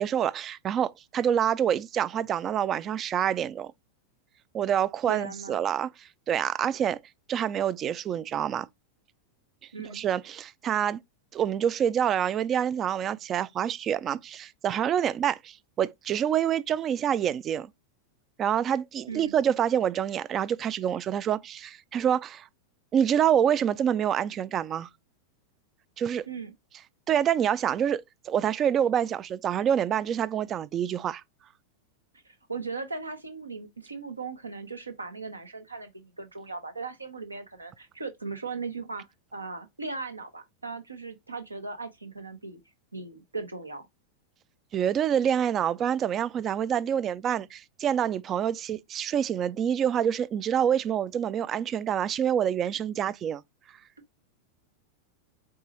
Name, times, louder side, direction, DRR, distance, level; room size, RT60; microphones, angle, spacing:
voice 1, 0.0-3.7 4.5-7.0 7.3-8.7 9.8-11.0 11.3-17.7 18.4-22.5 22.9-24.9 26.0-26.3 27.1-31.2 44.7-53.4, right 9 dB, 30° right, 0.3 m, -27 dB
voice 2, 5.1-5.6 9.7-10.0 19.1-19.3 26.3-26.5 32.2-39.1 39.3-42.6 42.9-43.9, right 4 dB, 80° right, 0.8 m, -38 dB
4.6 x 2.6 x 2.8 m
figure-of-eight pair, 90°, 0 cm